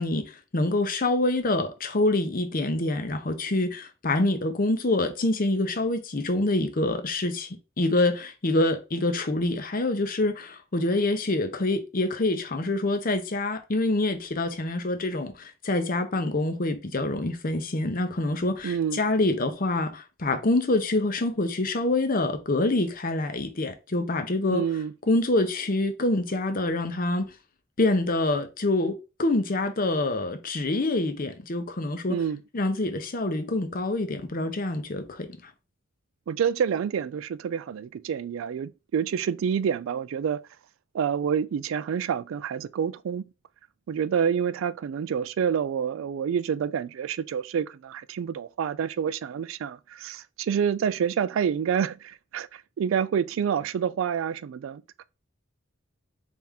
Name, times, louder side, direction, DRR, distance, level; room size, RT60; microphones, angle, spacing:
voice 1, 0.0-24.6 25.1-27.3 27.8-32.2 32.5-35.5, left 2 dB, 45° left, 0.8 m, -26 dB
voice 2, 18.6-19.0 24.5-24.9 32.1-32.4 36.3-40.4 40.9-43.3 43.9-55.0, right 7 dB, 75° right, 0.3 m, -28 dB
4.2 x 3.5 x 3.5 m
head